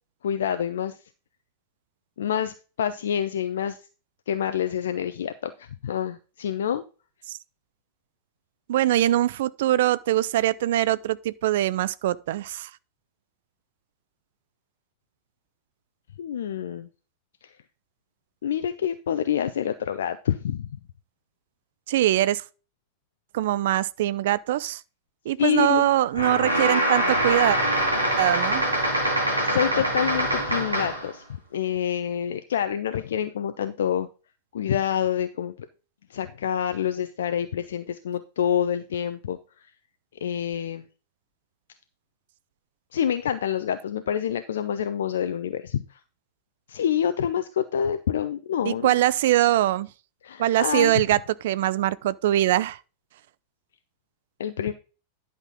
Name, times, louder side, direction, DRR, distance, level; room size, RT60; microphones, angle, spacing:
voice 1, 0.2-1.0 2.2-3.8 4.3-6.8 16.2-16.9 17.4-17.5 18.4-20.7 25.4-25.9 29.4-31.2 31.5-34.1 34.5-35.5 36.1-39.4 40.2-40.8 42.9-46.0 46.7-48.9 50.2-51.0 54.4-54.7, left 9 dB, 60° left, 0.6 m, -27 dB
voice 2, 8.7-12.7 21.9-22.4 23.3-24.8 25.3-27.6 28.2-28.6 48.7-49.9 50.4-52.8, right 13 dB, 55° right, 0.4 m, -22 dB
sound 1, 26.1-31.1, right 1 dB, 85° right, 2.3 m, -24 dB
10.5 x 6.0 x 3.7 m
figure-of-eight pair, 90°, 0 cm